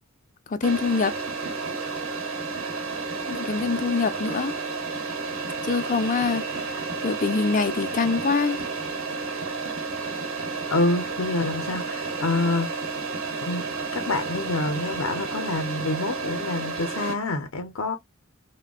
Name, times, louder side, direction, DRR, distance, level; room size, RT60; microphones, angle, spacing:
voice 1, 0.5-1.1 3.3-4.5 5.6-6.4 6.7-8.6, left 4 dB, 40° left, 0.4 m, -24 dB
sound 1, 0.6-17.1, right 4 dB, 85° right, 1.0 m, -31 dB
voice 2, 10.7-12.8 13.4-13.7 13.9-18.0, left 2 dB, 85° left, 0.6 m, -27 dB
3.4 x 2.2 x 2.3 m
head